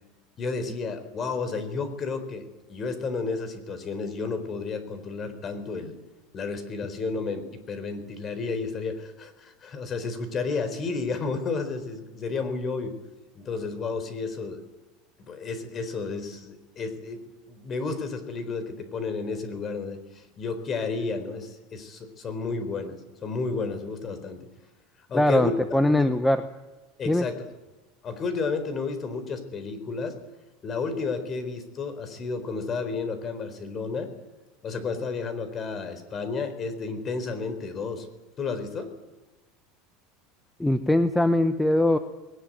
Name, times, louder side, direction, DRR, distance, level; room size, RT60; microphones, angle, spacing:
voice 1, 0.4-6.0 6.3-12.9 13.3-14.6 15.2-17.2 17.5-24.4 25.1-26.1 27.0-27.4 28.0-30.2 30.6-34.1 34.6-38.1 38.4-38.9, left 4 dB, 30° left, 10 dB, 4.1 m, -32 dB
voice 2, 25.1-26.4 27.1-27.3 40.6-42.0, left 1 dB, 5° left, 9 dB, 1.1 m, -21 dB
21.0 x 19.0 x 9.3 m, 1.1 s
supercardioid pair, 140°, 0 cm